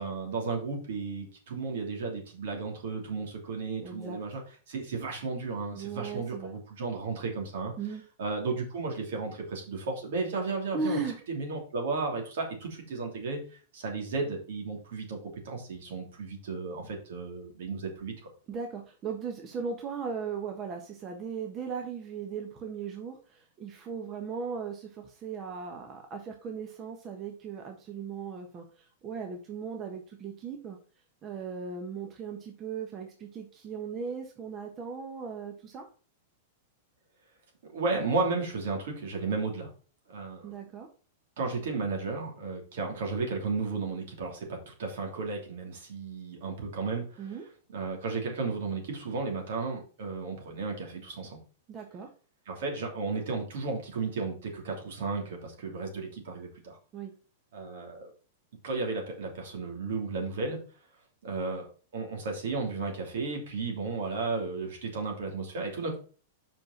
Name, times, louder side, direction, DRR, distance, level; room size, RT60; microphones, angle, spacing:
voice 1, 0.0-4.4 4.7-7.7 8.2-11.0 11.3-13.4 13.7-15.2 15.4-18.3 37.7-39.7 40.1-40.5 41.4-47.4 47.7-51.4 52.5-56.8 57.5-58.1 58.6-60.6 61.2-61.7 61.9-66.0, right 4 dB, 70° right, 1 dB, 3.1 m, -34 dB
voice 2, 3.8-4.2 5.7-6.5 7.8-8.0 10.7-11.2 18.5-30.8 31.2-35.9 40.4-40.9 47.2-47.4 51.7-52.1 56.9-57.1, right 5 dB, 35° right, 3 dB, 1.3 m, -37 dB
5.7 x 5.3 x 5.9 m, 0.39 s
hypercardioid pair, 110°, 0 cm